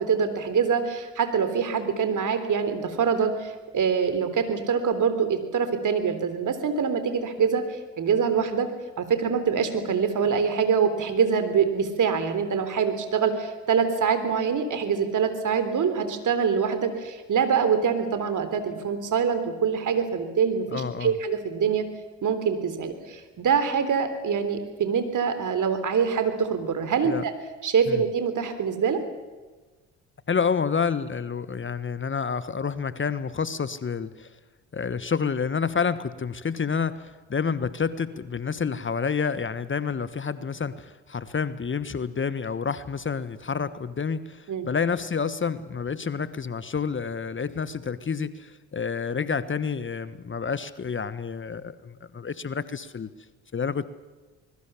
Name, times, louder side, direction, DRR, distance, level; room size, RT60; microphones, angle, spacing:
voice 1, 0.0-8.7 9.0-21.9 22.2-27.3 27.6-29.0 44.5-44.7, right 6 dB, 55° right, 9 dB, 3.6 m, -25 dB
voice 2, 20.7-21.2 27.0-27.2 27.9-28.0 30.3-34.3 34.7-53.1 53.5-53.9, left 6 dB, 30° left, 15 dB, 1.2 m, -29 dB
24.5 x 21.0 x 7.1 m, 1.3 s
hypercardioid pair, 50°, 37 cm